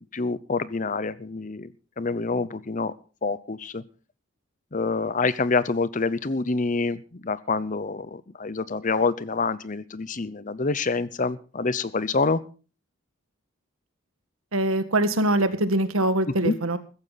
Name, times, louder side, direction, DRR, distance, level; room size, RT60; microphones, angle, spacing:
voice 1, 0.0-2.9 3.2-3.8 4.7-12.4 16.4-16.5, left 3 dB, 40° left, 17 dB, 0.7 m, -27 dB
voice 2, 14.5-16.8, right 1 dB, 80° right, 10 dB, 1.7 m, -23 dB
15.5 x 14.5 x 4.0 m, 0.37 s
head